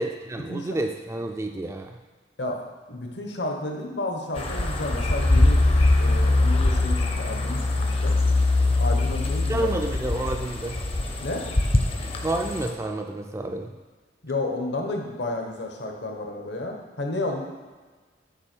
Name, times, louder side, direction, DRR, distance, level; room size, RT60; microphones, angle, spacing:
voice 1, 0.0-2.0 9.5-10.8 12.2-13.7, right 1 dB, 15° right, 4 dB, 0.3 m, -29 dB
voice 2, 2.9-5.6 6.0-8.2 8.8-10.0 11.2-11.5 14.2-17.4, left 2 dB, 70° left, 1 dB, 1.1 m, -31 dB
sound 1, 4.4-12.7, left 2 dB, 30° left, 0.6 m, -22 dB
7.6 x 5.2 x 4.5 m, 1.4 s
head